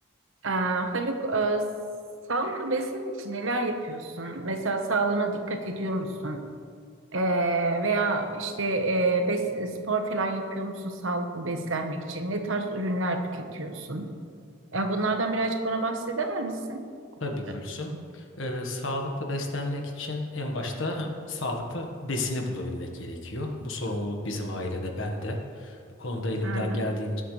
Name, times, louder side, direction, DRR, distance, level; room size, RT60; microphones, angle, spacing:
voice 1, 0.4-1.7 2.3-6.4 7.1-14.1 14.7-16.8 26.4-26.8, right 2 dB, 65° right, 5 dB, 1.1 m, -28 dB
voice 2, 17.2-27.2, left 1 dB, 65° left, 2 dB, 1.5 m, -32 dB
19.5 x 7.8 x 3.3 m, 2.3 s
head